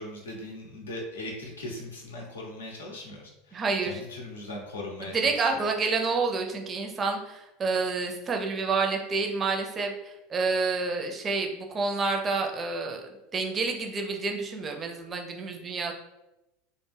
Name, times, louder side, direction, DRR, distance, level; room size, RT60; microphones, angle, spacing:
voice 1, 0.0-5.3, left 1 dB, 80° left, -1 dB, 0.6 m, -39 dB
voice 2, 3.5-4.0 5.0-13.0 13.3-15.9, right 4 dB, 30° right, 3 dB, 0.5 m, -29 dB
2.2 x 2.1 x 3.2 m, 0.94 s
figure-of-eight pair, 75°, 0 cm